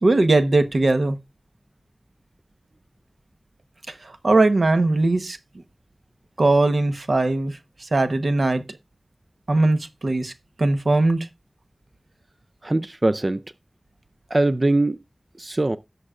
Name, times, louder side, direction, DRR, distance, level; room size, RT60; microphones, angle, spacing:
voice 1, 0.0-1.2 3.9-5.4 6.4-8.6 9.5-10.3 10.6-11.3, right 2 dB, 90° right, 1.0 m, -20 dB
voice 2, 12.6-13.4 14.3-15.0 15.4-15.8, right 2 dB, 45° right, 0.4 m, -21 dB
18.0 x 6.5 x 2.4 m
wide cardioid pair, 45°, 0 cm